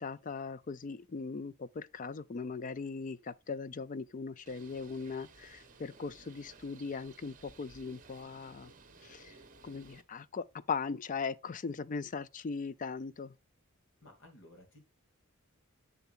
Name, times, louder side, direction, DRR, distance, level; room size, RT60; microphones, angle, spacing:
voice 1, 0.0-8.7 9.0-9.3 9.6-13.3, left 5 dB, 40° left, 0.4 m, -39 dB
Bird, 4.5-10.0, right 4 dB, 40° right, 1.0 m, -57 dB
voice 2, 14.0-14.8, left 1 dB, 65° left, 2.6 m, -56 dB
7.0 x 6.9 x 2.5 m
head